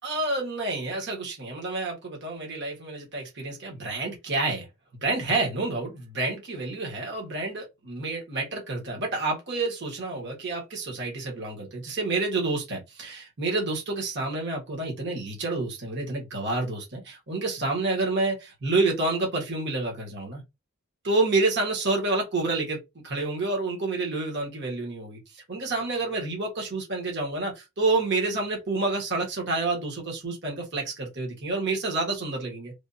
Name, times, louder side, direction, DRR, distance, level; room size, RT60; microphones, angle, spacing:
voice 1, 0.0-4.7 5.0-20.4 21.0-32.7, right 3 dB, 55° right, 1.3 m, -29 dB
3.4 x 2.3 x 2.6 m
head